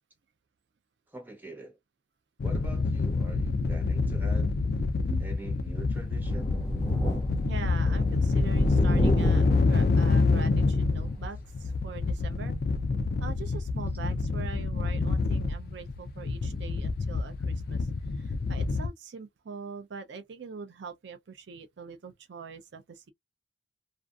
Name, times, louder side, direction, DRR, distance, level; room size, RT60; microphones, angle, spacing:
voice 1, 1.1-1.8 2.4-4.5 5.0-6.5, right 2 dB, 10° right, 0.8 m, -44 dB
sound 1, 2.4-18.9, left 3 dB, 50° left, 0.4 m, -27 dB
Thunder, 6.1-11.2 11.7-11.8 13.1-13.2, right 1 dB, 15° left, 1.2 m, -32 dB
voice 2, 7.4-12.5 13.2-23.1, right 5 dB, 60° right, 0.4 m, -43 dB
2.5 x 2.4 x 2.3 m
head